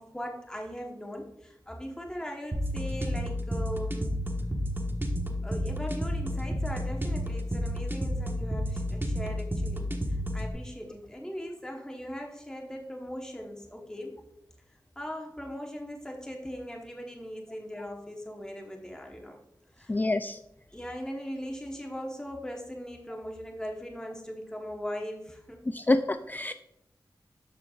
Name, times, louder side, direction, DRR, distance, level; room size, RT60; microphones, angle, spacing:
voice 1, 0.0-4.2 5.4-14.2 15.0-19.4 19.7-20.0 20.7-25.6, equal, 10° left, 1 dB, 1.1 m, -39 dB
sound 1, 2.5-10.5, equal, 30° right, 1.3 m, -31 dB
voice 2, 19.9-20.4 25.7-26.5, left 2 dB, 25° left, 9 dB, 0.3 m, -27 dB
13.0 x 4.5 x 2.4 m, 0.86 s
wide cardioid pair, 55°, 8 cm